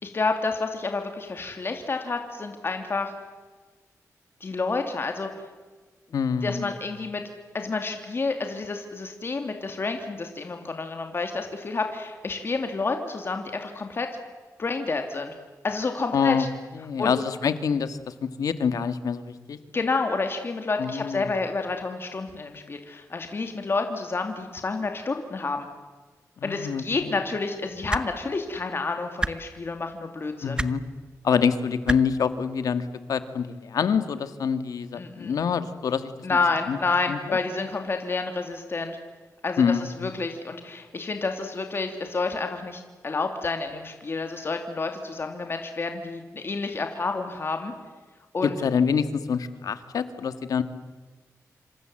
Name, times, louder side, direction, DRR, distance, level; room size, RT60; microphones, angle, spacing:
voice 1, 0.0-3.1 4.4-5.3 6.4-7.2 7.5-14.1 14.6-15.3 15.6-16.5 17.0-17.1 19.7-25.7 26.4-30.6 34.9-35.4 36.2-39.0 39.4-47.7 48.3-48.6, left 3 dB, 40° left, 5 dB, 2.7 m, -29 dB
voice 2, 6.1-6.7 16.1-16.5 16.7-19.6 20.8-21.3 26.4-27.2 30.4-30.8 31.2-36.4 36.7-36.8 37.1-37.4 39.6-40.1 48.4-50.6, left 6 dB, 90° left, 11 dB, 1.7 m, -26 dB
sound 1, 27.9-28.1 29.2-29.3 30.6-30.7 31.9-32.0 33.2-33.3, right 2 dB, 15° right, 1.0 m, -27 dB
28.0 x 26.5 x 7.8 m, 1.4 s
wide cardioid pair, 115°, 6 cm